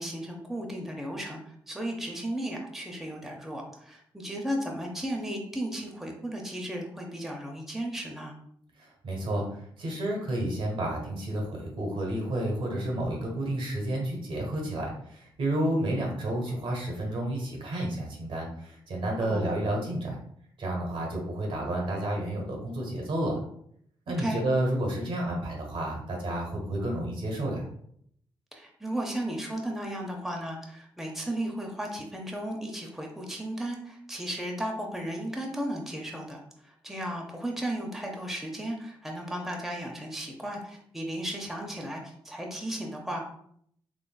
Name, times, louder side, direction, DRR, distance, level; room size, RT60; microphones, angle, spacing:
voice 1, 0.0-1.4 1.7-8.3 19.2-19.5 24.2-24.4 28.5-43.2, right 1 dB, 5° right, 0 dB, 0.6 m, -35 dB
voice 2, 8.8-20.2 20.6-23.4 24.1-27.6, right 1 dB, 70° right, -1 dB, 1.2 m, -31 dB
3.8 x 3.0 x 2.2 m, 0.67 s
cardioid pair, 75°, 9 cm